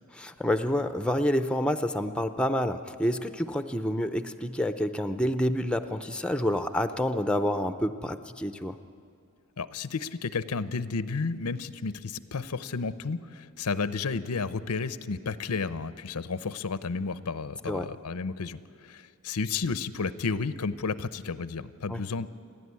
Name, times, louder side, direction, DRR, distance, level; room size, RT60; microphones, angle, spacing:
voice 1, 0.1-8.8 17.7-17.9 21.9-22.0, equal, 5° left, 9 dB, 0.6 m, -28 dB
voice 2, 9.6-22.3, left 4 dB, 90° left, 15 dB, 0.7 m, -32 dB
29.0 x 11.0 x 9.6 m, 2.4 s
head